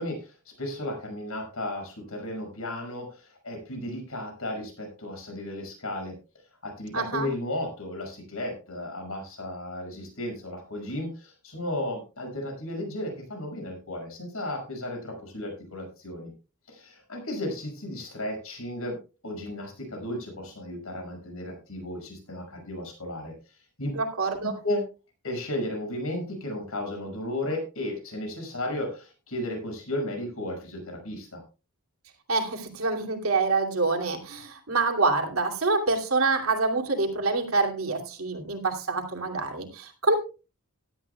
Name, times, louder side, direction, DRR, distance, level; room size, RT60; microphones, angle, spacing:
voice 1, 0.0-6.1 6.6-16.3 16.7-19.0 19.2-23.3 23.8-23.9 24.4-24.8 25.2-31.4, left 1 dB, 70° left, 3 dB, 5.9 m, -34 dB
voice 2, 6.9-7.3 23.9-24.6 32.3-40.2, right 3 dB, 70° right, 3 dB, 2.7 m, -26 dB
17.5 x 11.5 x 2.3 m, 0.32 s
head